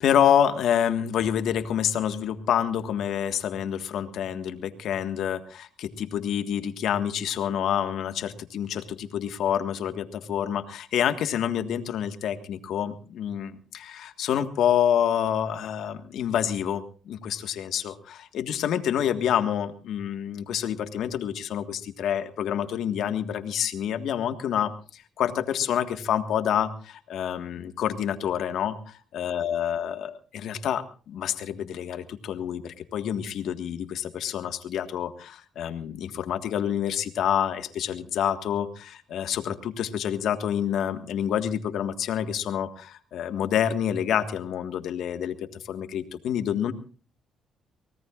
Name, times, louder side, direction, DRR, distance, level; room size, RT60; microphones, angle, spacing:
voice 1, 0.0-46.7, left 9 dB, 75° left, 8 dB, 1.6 m, -27 dB
24.5 x 18.0 x 2.5 m, 0.38 s
cardioid pair, 90°, 0 cm